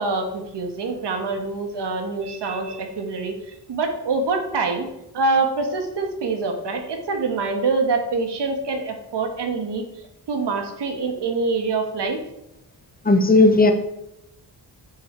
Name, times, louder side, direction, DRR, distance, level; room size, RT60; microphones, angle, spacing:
voice 1, 0.0-4.9 5.1-9.8 10.3-12.2, right 3 dB, 75° right, 4 dB, 2.0 m, -25 dB
voice 2, 13.1-13.7, left 2 dB, 20° left, 7 dB, 1.0 m, -14 dB
9.5 x 8.8 x 4.8 m, 0.83 s
wide cardioid pair, 170°, 41 cm